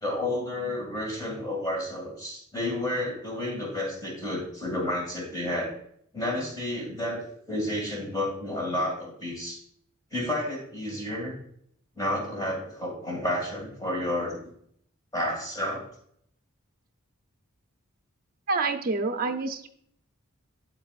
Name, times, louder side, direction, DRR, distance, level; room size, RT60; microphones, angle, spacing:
voice 1, 0.0-5.7 6.1-9.6 10.1-11.3 12.0-14.4 15.1-15.8, left 1 dB, 15° left, -2 dB, 2.2 m, -31 dB
voice 2, 18.5-19.7, right 3 dB, 40° right, 6 dB, 0.6 m, -27 dB
8.7 x 7.4 x 2.4 m, 0.67 s
head